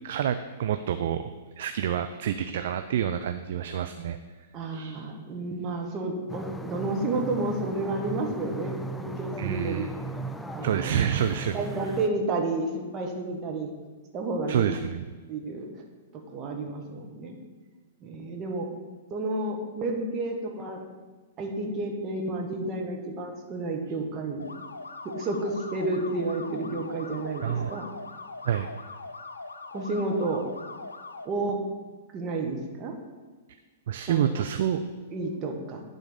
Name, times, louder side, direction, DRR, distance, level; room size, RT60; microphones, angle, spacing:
voice 1, 0.0-1.3 1.6-4.2 4.7-5.0 9.4-9.9 10.6-11.6 14.5-15.0 27.4-27.7 28.4-28.7 33.9-34.8, right 9 dB, 55° right, 9 dB, 0.4 m, -28 dB
voice 2, 4.5-9.8 10.5-11.0 11.5-13.7 14.1-14.8 15.3-15.7 16.1-17.4 18.0-18.7 19.1-20.8 21.4-24.5 25.0-27.9 29.7-30.4 31.2-31.6 32.1-32.9 34.1-34.4 35.1-35.8, right 2 dB, 30° right, 1 dB, 1.4 m, -31 dB
sound 1, 6.3-12.1, right 2 dB, 5° left, 0.4 m, -37 dB
sound 2, 24.4-31.3, left 3 dB, 80° left, 0.5 m, -41 dB
10.0 x 3.9 x 5.1 m, 1.3 s
figure-of-eight pair, 105°, 0 cm